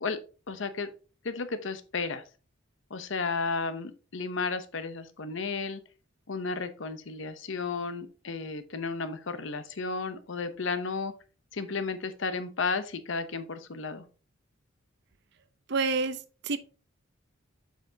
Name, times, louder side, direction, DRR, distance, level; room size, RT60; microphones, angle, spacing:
voice 1, 0.5-0.9 1.2-2.2 2.9-5.8 6.3-11.1 11.5-14.0, left 4 dB, 65° left, 0.7 m, -33 dB
voice 2, 15.7-16.6, right 4 dB, 55° right, 0.6 m, -28 dB
7.4 x 5.7 x 2.7 m
head